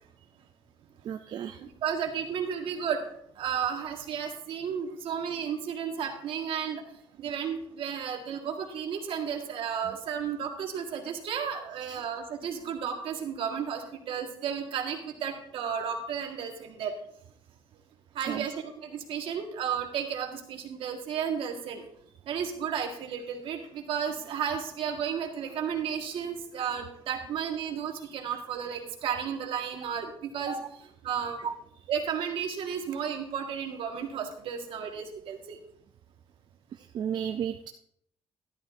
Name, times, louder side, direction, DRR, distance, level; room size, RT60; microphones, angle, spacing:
voice 1, 1.0-1.6 11.9-12.0 18.3-18.5 31.4-31.5 36.8-37.7, right 8 dB, 45° right, 6 dB, 0.4 m, -33 dB
voice 2, 1.6-6.8 7.1-16.9 18.1-21.9 22.2-31.5 31.9-35.6, right 7 dB, 65° right, 3 dB, 1.6 m, -33 dB
12.5 x 11.5 x 2.6 m, 0.70 s
cardioid pair, 170°, 10 cm